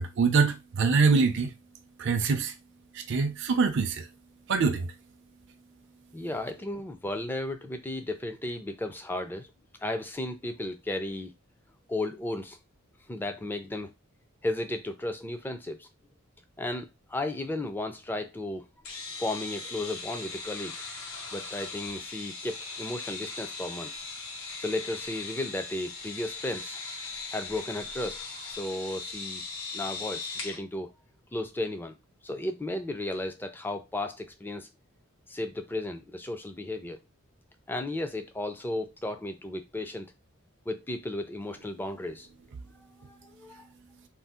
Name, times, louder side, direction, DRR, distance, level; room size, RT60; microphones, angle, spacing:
voice 1, 0.0-1.5 2.0-2.5 2.9-4.1 4.5-4.9, right 4 dB, 55° right, 0.4 m, -24 dB
voice 2, 6.1-9.5 9.8-11.3 11.9-12.6 13.1-13.9 14.4-15.9 16.6-18.7 19.2-20.8 21.3-24.0 24.6-26.8 27.3-28.2 28.5-29.4 29.7-30.9 31.3-31.9 32.2-34.7 35.3-37.0 37.7-40.1 40.7-42.3 43.0-43.7, left 1 dB, 10° left, 0.4 m, -34 dB
sound 1, 18.8-30.6, left 4 dB, 90° left, 1.1 m, -39 dB
2.6 x 2.3 x 3.6 m
head